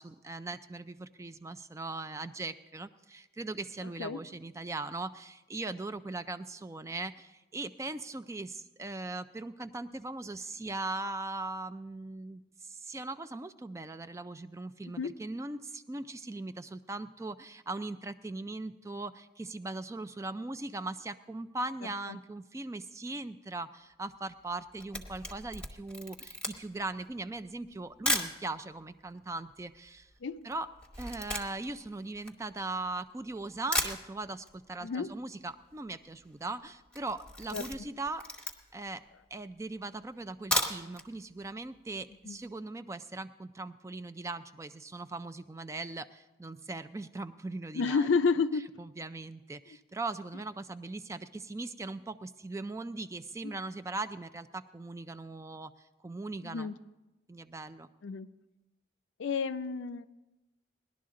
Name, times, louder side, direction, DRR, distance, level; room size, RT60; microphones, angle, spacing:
voice 1, 0.0-30.1 30.4-30.7 31.0-38.3 38.7-39.1 39.3-48.1 48.8-56.7 57.3-57.9, right 2 dB, 15° right, 12 dB, 0.3 m, -39 dB
Camera, 24.5-28.4 29.1-29.2 29.4-33.0 33.4-33.5 33.7-34.6 34.8-34.9 35.2-35.3 35.5-35.9 36.3-36.5 36.9-38.9 39.4-39.5 40.3-41.1 41.4-41.5 41.9-42.0, left 1 dB, 5° left, 0.9 m, -35 dB
voice 2, 34.8-35.1 37.5-37.7 42.2-42.4 47.7-48.6 53.4-53.6 56.4-56.8 58.0-58.3 59.2-60.1, left 5 dB, 85° left, 12 dB, 0.5 m, -30 dB
18.5 x 11.5 x 3.7 m, 1.0 s
head